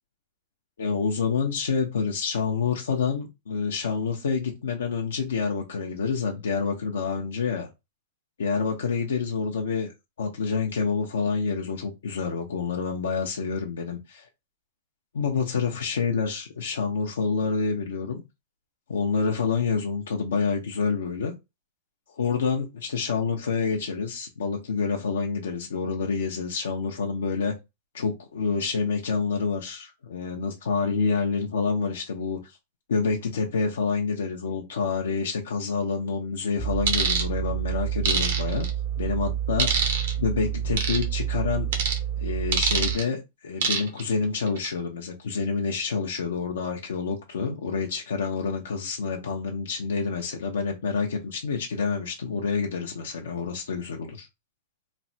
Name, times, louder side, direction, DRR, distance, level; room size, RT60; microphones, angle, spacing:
voice 1, 0.8-7.7 8.4-9.9 10.2-14.3 15.1-18.2 18.9-21.3 22.1-27.5 27.9-32.6 32.9-38.7 39.0-39.7 40.2-41.7 42.2-54.3, left 5 dB, 90° left, 0.5 m, -28 dB
sound 1, 36.6-42.9, right 10 dB, 40° left, 0.5 m, -29 dB
sound 2, 36.9-37.2 38.0-38.7 39.6-40.1 40.8-41.0 41.7-42.0 42.5-43.0 43.6-44.0 44.5-44.7, right 6 dB, 70° right, 0.8 m, -25 dB
3.1 x 2.0 x 2.7 m
hypercardioid pair, 130°, 0 cm